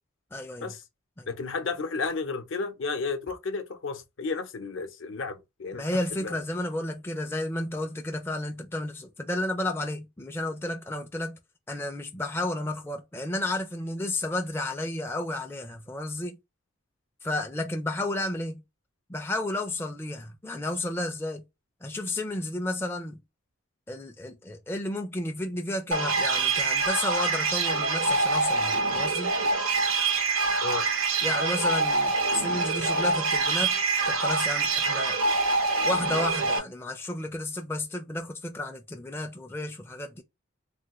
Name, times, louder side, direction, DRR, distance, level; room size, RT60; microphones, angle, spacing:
voice 1, 0.3-0.7 1.2-1.3 5.7-11.4 11.7-16.4 17.2-18.6 19.1-21.4 21.8-23.2 23.9-29.3 31.2-33.8 34.0-35.2 35.8-40.2, left 1 dB, 10° left, 0.4 m, -32 dB
voice 2, 1.3-5.8 6.2-6.4 30.6-30.9, left 4 dB, 65° left, 0.7 m, -32 dB
sound 1, 25.9-36.6, right 3 dB, 75° right, 0.9 m, -25 dB
3.3 x 2.3 x 3.0 m
head